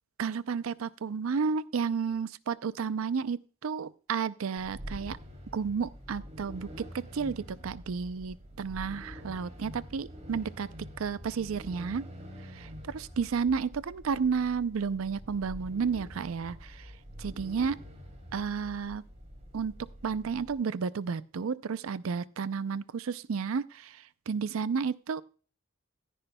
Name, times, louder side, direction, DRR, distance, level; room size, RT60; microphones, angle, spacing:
voice 1, 0.2-5.2 5.5-10.7 11.0-12.1 12.5-16.9 17.2-17.8 18.3-19.0 19.5-19.7 20.0-25.2, right 5 dB, 80° right, 17 dB, 0.5 m, -32 dB
sound 1, 4.6-20.5, equal, 35° right, 3.0 m, -46 dB
15.5 x 10.0 x 2.2 m, 0.38 s
head